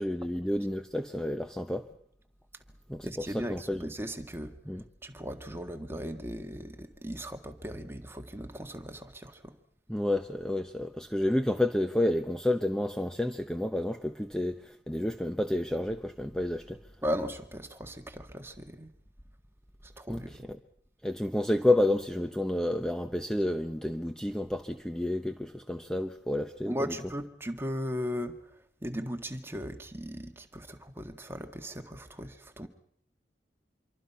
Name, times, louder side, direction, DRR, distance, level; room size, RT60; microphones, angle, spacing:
voice 1, 0.0-1.9 2.9-3.9 4.7-4.8 9.9-16.8 20.1-20.2 21.0-27.0, left 1 dB, 5° left, 0.9 m, -30 dB
voice 2, 3.0-4.6 5.0-9.6 17.0-18.9 20.0-20.4 26.6-28.4 28.8-32.7, equal, 15° right, 1.8 m, -37 dB
26.5 x 24.0 x 5.8 m
head